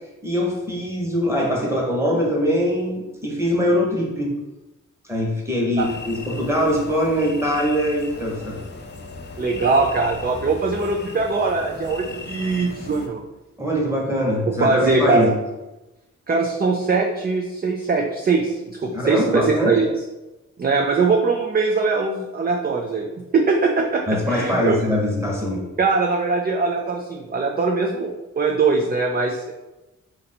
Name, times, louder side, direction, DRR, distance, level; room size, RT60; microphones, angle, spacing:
voice 1, 0.2-4.3 5.1-8.6 13.6-15.3 18.9-19.8 24.1-25.6, equal, 10° right, -2 dB, 1.0 m, -22 dB
sound 1, 5.8-13.1, left 3 dB, 35° left, 0.5 m, -37 dB
voice 2, 9.4-13.2 14.5-15.3 16.3-19.9 20.6-23.1 23.3-24.8 25.8-29.5, right 4 dB, 30° right, 1 dB, 0.4 m, -21 dB
4.2 x 2.6 x 4.2 m, 1.0 s
wide cardioid pair, 135°, 30 cm